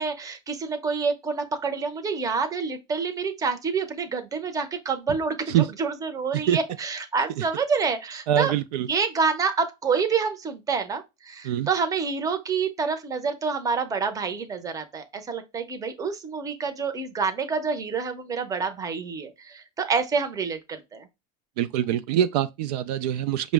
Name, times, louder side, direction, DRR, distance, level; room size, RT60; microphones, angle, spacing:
voice 1, 0.0-8.5 8.8-21.1, right 5 dB, 15° right, 0.6 m, -27 dB
voice 2, 8.3-8.9 11.4-11.7 21.6-23.5, right 11 dB, 75° right, 0.4 m, -24 dB
5.1 x 2.1 x 3.3 m
supercardioid pair, 130°, 21 cm